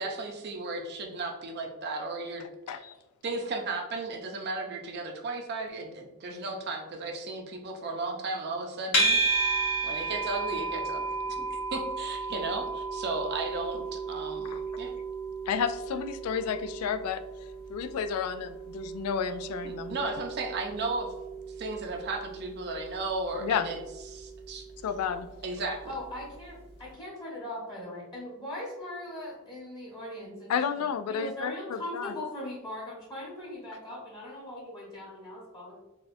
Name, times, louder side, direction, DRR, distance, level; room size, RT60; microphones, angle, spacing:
voice 1, 0.0-2.4 2.7-2.8 3.2-9.6 9.8-11.0 11.4-14.9 19.6-21.1 21.6-23.8 24.1-24.6 25.4-25.8, right 3 dB, 50° right, 3 dB, 0.5 m, -35 dB
sound 1, 8.9-26.1, right 3 dB, 60° left, 1.2 m, -34 dB
voice 2, 15.5-17.2 17.7-20.0 23.4-23.7 24.8-25.3 30.5-32.1, left 7 dB, 85° left, 10 dB, 0.3 m, -31 dB
voice 3, 25.9-30.5 31.1-35.8, left 1 dB, 20° left, -6 dB, 1.0 m, -40 dB
4.1 x 2.3 x 2.6 m, 1.0 s
head